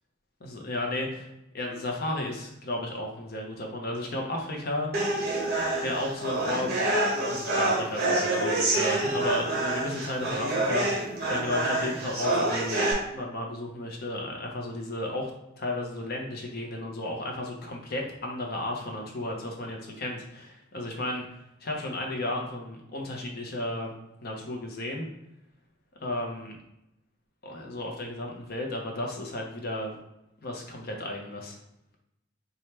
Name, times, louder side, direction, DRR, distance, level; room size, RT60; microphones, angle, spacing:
voice 1, 0.4-1.3 1.5-4.9 5.8-6.7 7.3-15.3 15.6-23.9 24.2-25.1 26.0-26.6 27.4-30.0 30.4-31.6, left 1 dB, 50° left, 1 dB, 0.7 m, -33 dB
sound 1, 4.9-12.9, right 2 dB, 50° right, 1.1 m, -27 dB
3.2 x 2.3 x 4.3 m, 0.86 s
head